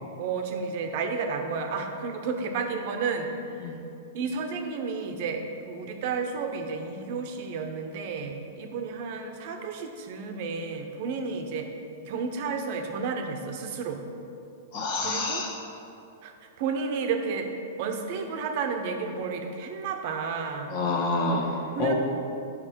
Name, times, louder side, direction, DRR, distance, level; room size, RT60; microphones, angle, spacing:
voice 1, 0.2-3.8 4.1-11.7 12.1-14.0 15.0-15.5 16.2-17.5 17.8-20.7 21.7-21.9, right 5 dB, 55° right, 4 dB, 0.9 m, -32 dB
voice 2, 14.7-15.6 20.7-21.9, left 2 dB, 55° left, 0 dB, 1.4 m, -28 dB
7.7 x 5.9 x 4.6 m, 2.6 s
hypercardioid pair, 120°, 0 cm